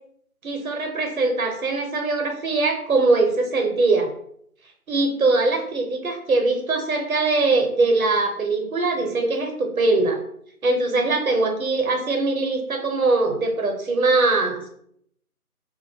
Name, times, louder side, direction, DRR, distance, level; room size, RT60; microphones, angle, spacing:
voice 1, 0.4-4.1 4.9-10.2 10.6-14.7, right 3 dB, 65° right, 3 dB, 0.7 m, -22 dB
2.2 x 2.0 x 3.1 m, 0.67 s
figure-of-eight pair, 170°, 45 cm